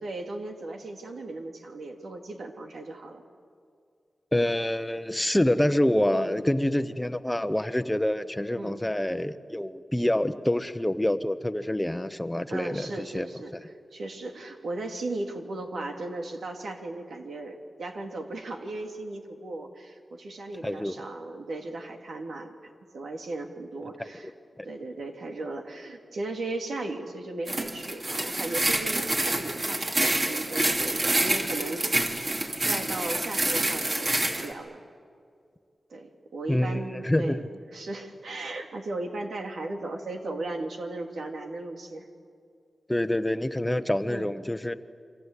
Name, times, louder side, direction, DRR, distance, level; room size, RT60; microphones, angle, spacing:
voice 1, 0.0-3.2 6.1-6.3 8.6-8.8 12.5-22.5 22.9-24.3 24.6-32.3 32.6-34.8 35.9-42.1 44.1-44.3, right 2 dB, 90° right, 3 dB, 2.9 m, -36 dB
voice 2, 4.3-13.3 13.5-13.6 20.6-21.0 24.0-24.1 24.6-24.7 36.5-37.5 42.9-44.7, left 1 dB, 10° left, 10 dB, 1.0 m, -27 dB
sound 1, 27.5-34.5, right 1 dB, 40° right, 3.0 m, -27 dB
28.5 x 25.0 x 8.3 m, 2.3 s
wide cardioid pair, 85°, 0 cm